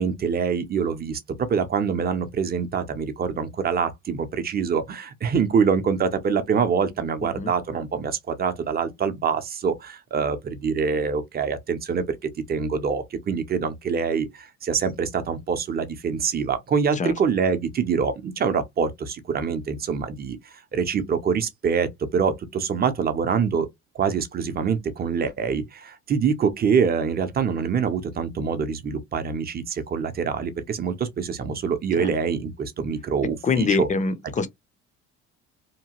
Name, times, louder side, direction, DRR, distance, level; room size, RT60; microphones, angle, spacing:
voice 1, 0.0-20.4 20.7-23.7 23.9-33.9 34.2-34.3, right 6 dB, 30° right, 0.6 m, -25 dB
voice 2, 33.4-34.5, left 4 dB, 25° left, 0.5 m, -24 dB
2.8 x 2.1 x 2.9 m
cardioid pair, 110°, 30 cm